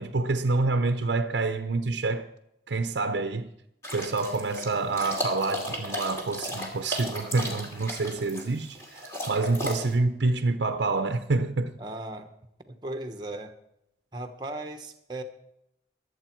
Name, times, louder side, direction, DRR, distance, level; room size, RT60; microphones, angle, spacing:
voice 1, 0.0-2.3 2.7-3.5 3.9-11.7, right 3 dB, 85° right, 0.7 m, -27 dB
sound 1, 3.8-9.9, left 1 dB, 15° left, 2.5 m, -35 dB
voice 2, 11.8-12.3 12.8-13.5 14.1-15.2, right 2 dB, 25° right, 1.1 m, -36 dB
22.5 x 8.1 x 4.6 m
head